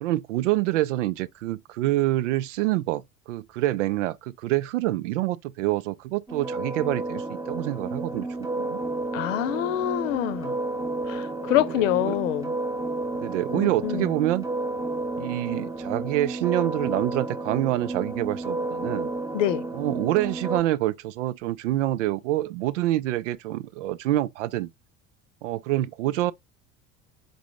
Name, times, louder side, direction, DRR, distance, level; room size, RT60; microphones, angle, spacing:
voice 1, 0.0-8.3 8.6-8.8 11.5-12.2 13.2-14.5 15.2-19.1 19.7-24.7 25.4-26.3, right 15 dB, 60° right, 0.5 m, -26 dB
sound 1, 6.3-20.6, right 2 dB, 5° right, 1.1 m, -31 dB
voice 2, 9.1-10.6 11.1-12.5 13.5-14.1 19.3-19.6, left 13 dB, 60° left, 0.8 m, -26 dB
4.9 x 3.9 x 2.6 m
figure-of-eight pair, 70°, 42 cm